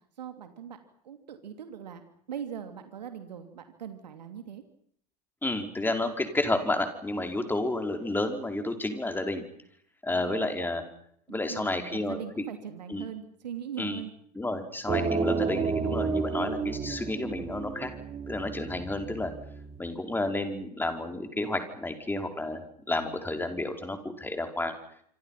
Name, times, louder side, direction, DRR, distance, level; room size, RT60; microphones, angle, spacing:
voice 1, 0.2-0.8 1.0-4.6 10.1-10.6 11.3-14.1, right 8 dB, 80° right, 8 dB, 2.9 m, -41 dB
voice 2, 5.4-9.4 10.0-10.8 11.3-12.4 12.9-13.1 13.8-14.0 14.3-17.9 18.3-19.3 19.8-24.7, left 2 dB, 10° left, 6 dB, 5.2 m, -31 dB
sound 1, 14.9-19.8, right 5 dB, 30° right, 4.2 m, -31 dB
26.5 x 26.5 x 5.9 m, 0.66 s
hypercardioid pair, 90°, 21 cm